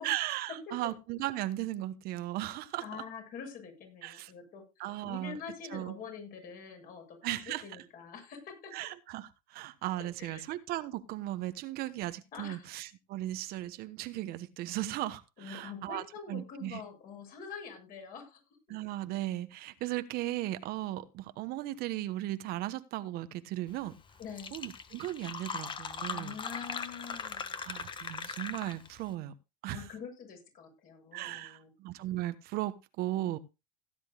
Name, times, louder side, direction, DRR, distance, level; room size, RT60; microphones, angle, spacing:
voice 1, 0.0-3.0 4.0-4.3 4.8-5.4 5.7-6.0 7.2-7.8 8.7-16.0 16.3-16.8 18.7-23.9 24.5-26.3 27.6-29.3 29.6-29.9 31.1-33.4, right 15 dB, 55° right, 1.1 m, -36 dB
voice 2, 2.8-8.7 10.2-10.4 12.3-12.7 15.4-18.4 24.2-24.5 26.1-27.6 29.7-31.7, left 6 dB, 50° left, 7.4 m, -45 dB
Fill (with liquid), 23.9-24.0 24.2-29.0, left 5 dB, 25° left, 1.3 m, -40 dB
17.0 x 10.5 x 2.3 m
supercardioid pair, 100°, 18 cm